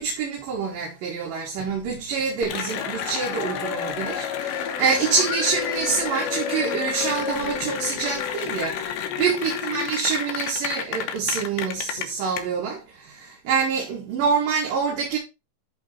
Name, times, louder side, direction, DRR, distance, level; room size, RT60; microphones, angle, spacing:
voice 1, 0.0-15.2, right 5 dB, 60° right, 3.4 m, -26 dB
Cheering / Applause, 2.4-12.4, left 8 dB, 85° left, 3.3 m, -30 dB
11.0 x 3.9 x 4.4 m
omnidirectional pair, 4.9 m